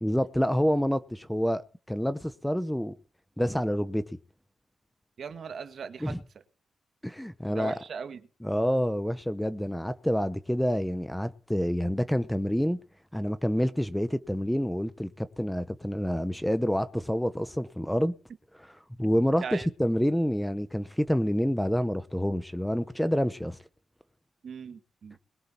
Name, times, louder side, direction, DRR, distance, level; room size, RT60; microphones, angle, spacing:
voice 1, 0.0-2.9 3.4-4.0 6.0-6.2 7.0-7.7 8.4-12.8 13.1-18.1 19.0-23.6, equal, 5° left, 0.7 m, -28 dB
voice 2, 5.2-6.2 7.5-8.3 19.4-19.7 24.4-25.2, right 6 dB, 60° right, 1.6 m, -39 dB
21.5 x 7.8 x 4.4 m
wide cardioid pair, 130°, 0 cm